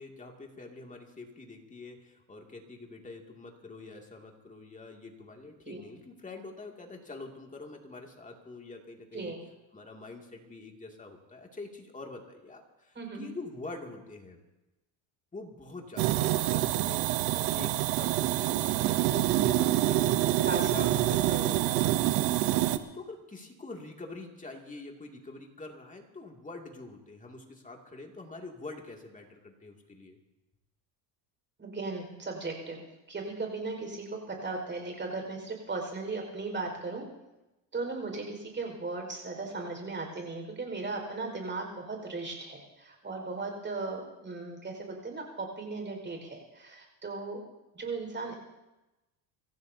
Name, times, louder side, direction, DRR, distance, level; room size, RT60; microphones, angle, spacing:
voice 1, 0.0-9.3 9.7-14.4 15.3-20.1 20.6-30.2, left 2 dB, 15° left, 2 dB, 2.6 m, -45 dB
voice 2, 12.9-13.3 20.4-20.7 21.1-21.5 31.6-32.8 33.1-37.1 37.7-47.4 47.7-48.4, right 3 dB, 25° right, 2 dB, 5.2 m, -37 dB
sound 1, 16.0-22.8, right 14 dB, 80° right, 1.0 m, -26 dB
25.0 x 15.5 x 2.8 m, 1.0 s
supercardioid pair, 100°, 46 cm